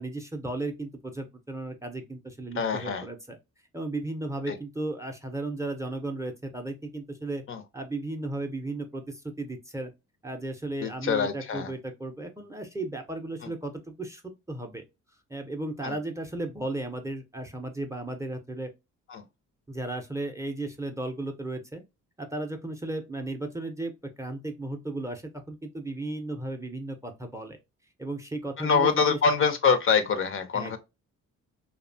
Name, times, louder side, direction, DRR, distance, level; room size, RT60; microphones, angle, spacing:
voice 1, 0.0-3.4 3.7-7.4 7.7-9.9 10.2-14.2 14.5-14.8 15.3-18.7 19.7-21.8 22.2-23.9 24.2-27.6 28.0-29.2 30.5-30.8, right 2 dB, 10° right, 0.5 m, -35 dB
voice 2, 2.6-3.1 4.5-4.6 7.5-7.6 10.8-11.7 13.4-13.5 15.8-16.0 19.1-19.2 28.6-30.8, left 5 dB, 45° left, 0.5 m, -25 dB
2.7 x 2.1 x 2.5 m
cardioid pair, 90°, 30 cm